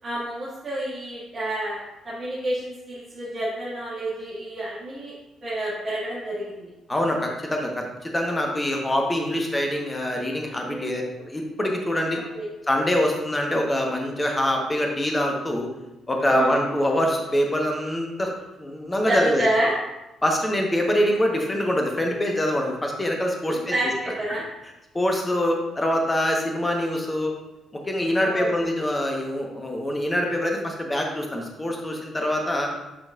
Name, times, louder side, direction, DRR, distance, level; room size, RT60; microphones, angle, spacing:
voice 1, 0.0-5.1 5.4-6.7 10.7-11.0 12.1-12.5 16.2-16.5 19.1-19.7 23.4-24.4 28.2-28.6, right 1 dB, 40° right, -11 dB, 2.3 m, -29 dB
voice 2, 6.9-12.2 12.7-15.7 16.1-18.3 18.6-19.4 20.2-23.6 24.9-27.3 27.9-32.7, left 1 dB, 20° left, 1 dB, 1.2 m, -24 dB
8.8 x 5.3 x 2.5 m, 0.98 s
figure-of-eight pair, 45°, 0 cm